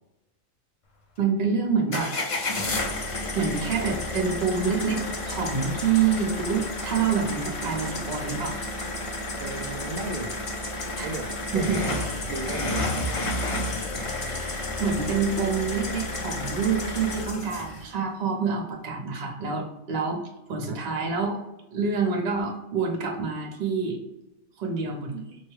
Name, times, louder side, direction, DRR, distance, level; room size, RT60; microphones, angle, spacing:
voice 1, 1.2-2.1 3.3-8.7 11.0-11.1 11.5-12.0 14.2-20.2 20.5-21.4 21.7-24.0 24.6-25.4, right 5 dB, 50° right, 0 dB, 1.0 m, -27 dB
sound 1, 1.9-17.8, left 2 dB, 50° left, 0.4 m, -31 dB
voice 2, 9.4-10.7 11.0-13.1 20.6-21.1, right 2 dB, 80° right, 5 dB, 0.4 m, -36 dB
5.0 x 2.2 x 3.1 m, 0.94 s
omnidirectional pair, 1.4 m